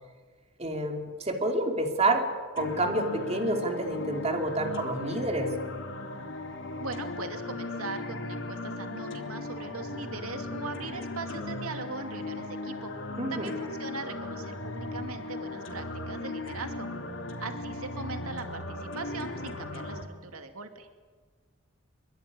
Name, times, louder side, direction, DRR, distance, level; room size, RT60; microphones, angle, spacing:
voice 1, 0.6-2.3 2.5-5.5 13.2-13.5, right 2 dB, 30° right, 4 dB, 3.0 m, -28 dB
sound 1, 2.6-20.0, left 2 dB, 60° left, 3.5 m, -37 dB
voice 2, 6.8-12.9 13.3-16.9 17.4-20.9, right 3 dB, 90° right, 7 dB, 2.5 m, -40 dB
24.5 x 24.0 x 9.7 m, 1.5 s
head